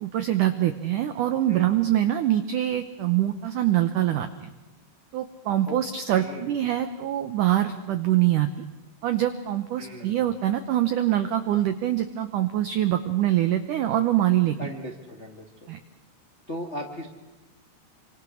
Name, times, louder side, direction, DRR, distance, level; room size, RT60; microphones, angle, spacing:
voice 1, 0.0-4.5 5.1-8.5 9.0-14.7 15.7-15.8, right 12 dB, 85° right, 10 dB, 1.8 m, -24 dB
voice 2, 6.1-6.6 9.8-10.3 14.6-15.7 16.5-17.1, equal, 55° left, 2 dB, 0.7 m, -38 dB
26.5 x 25.5 x 6.4 m, 1.1 s
omnidirectional pair, 5.0 m